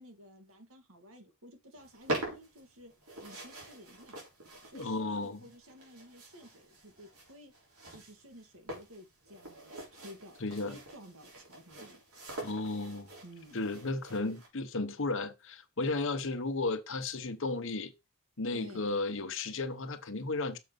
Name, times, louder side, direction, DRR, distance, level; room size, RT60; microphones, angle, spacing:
voice 1, 0.0-2.9 3.2-4.2 4.7-7.5 7.9-12.0 13.2-13.6 18.5-19.0, equal, 70° right, 2.1 m, -53 dB
sound 1, 1.7-14.5, right 1 dB, 85° right, 4.1 m, -44 dB
voice 2, 4.7-5.4 10.4-10.7 12.4-13.1 13.5-17.9 18.4-20.6, left 3 dB, 60° left, 1.1 m, -34 dB
6.9 x 5.1 x 5.3 m
head